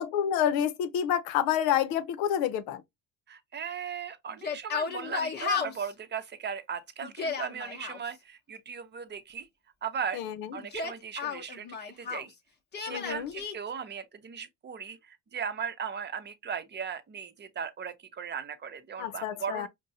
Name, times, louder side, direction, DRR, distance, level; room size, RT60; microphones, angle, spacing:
voice 1, 0.0-2.8 10.1-10.6 12.9-13.3 19.0-19.7, left 9 dB, 85° left, 0.7 m, -28 dB
voice 2, 3.3-9.5 9.8-10.2 10.5-12.3 12.8-19.7, right 7 dB, 30° right, 0.7 m, -37 dB
Yell, 4.3-5.9 7.0-8.0 10.6-12.3 12.7-13.5, left 6 dB, 30° left, 0.8 m, -33 dB
5.2 x 2.2 x 2.7 m
cardioid pair, 105°, 35 cm